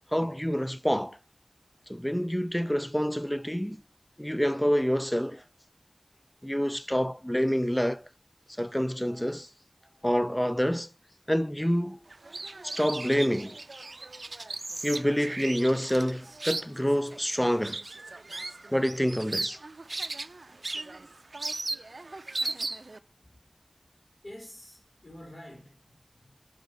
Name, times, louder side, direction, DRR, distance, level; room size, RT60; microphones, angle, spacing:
voice 1, 0.1-1.2 1.9-3.8 4.2-5.4 6.4-8.1 8.6-9.5 10.0-10.9 11.3-12.0 12.6-13.6 14.8-17.8 18.7-19.6, equal, 10° left, 0.3 m, -27 dB
sound 1, 12.1-23.0, right 2 dB, 70° right, 0.4 m, -37 dB
voice 2, 23.2-23.7 24.2-26.4, left 1 dB, 60° left, 4.0 m, -49 dB
9.1 x 5.2 x 4.8 m
wide cardioid pair, 55°, 0 cm